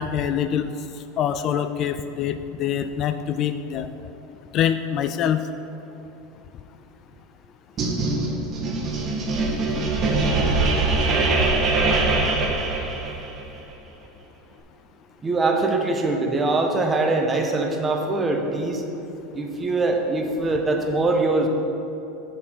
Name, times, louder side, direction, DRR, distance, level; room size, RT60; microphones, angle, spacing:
voice 1, 0.0-3.9 4.5-5.4, left 9 dB, 45° left, 10 dB, 0.3 m, -25 dB
sound 1, 7.8-13.4, right 3 dB, 40° right, 1.4 m, -22 dB
voice 2, 15.2-18.8 19.3-21.5, right 2 dB, 20° right, 2 dB, 1.1 m, -22 dB
6.8 x 4.5 x 6.6 m, 2.9 s
hypercardioid pair, 95°, 0 cm